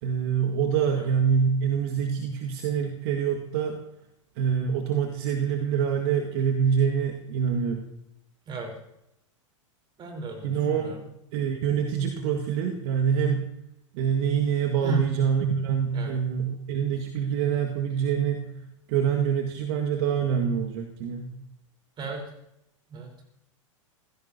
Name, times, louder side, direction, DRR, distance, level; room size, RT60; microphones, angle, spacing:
voice 1, 0.0-3.8 4.4-7.9 10.4-10.9 11.3-13.4 13.9-18.5 18.9-21.3, right 7 dB, 50° right, 2 dB, 1.9 m, -25 dB
voice 2, 10.0-11.1 14.8-15.1 15.9-16.1 22.0-22.3 22.9-23.1, right 3 dB, 25° right, 3 dB, 4.1 m, -35 dB
27.0 x 16.0 x 2.8 m, 0.82 s
figure-of-eight pair, 95°, 17 cm